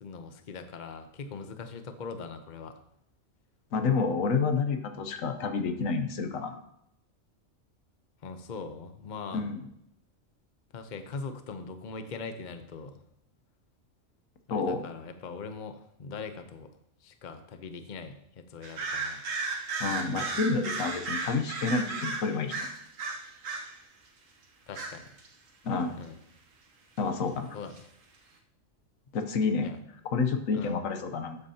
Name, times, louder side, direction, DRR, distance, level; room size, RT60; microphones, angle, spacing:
voice 1, 0.0-2.8 8.2-9.5 10.7-13.0 14.5-16.7 17.0-19.2 24.7-25.1 26.0-26.2 27.5-27.7 29.6-29.8 30.5-30.8, left 4 dB, 40° left, 8 dB, 0.8 m, -41 dB
voice 2, 3.7-6.6 9.3-9.6 14.5-14.9 19.8-22.7 25.6-26.0 27.0-27.6 29.1-29.7 30.0-31.4, left 4 dB, 85° left, 7 dB, 1.3 m, -29 dB
sound 1, 18.6-23.8 24.7-25.3 27.8-27.9, right 3 dB, 80° right, 1.4 m, -34 dB
13.0 x 8.3 x 2.8 m, 0.76 s
omnidirectional pair, 1.4 m